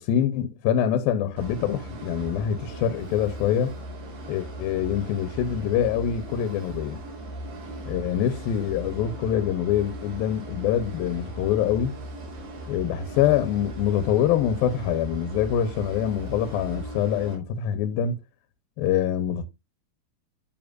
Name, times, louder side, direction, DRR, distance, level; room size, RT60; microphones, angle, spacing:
voice 1, 0.0-3.7 4.3-7.0 7.9-12.0 12.7-18.2 18.8-19.5, left 9 dB, 85° left, 2.6 m, -25 dB
sound 1, 1.4-17.4, right 1 dB, 80° right, 4.4 m, -38 dB
8.7 x 7.6 x 2.4 m
omnidirectional pair, 4.1 m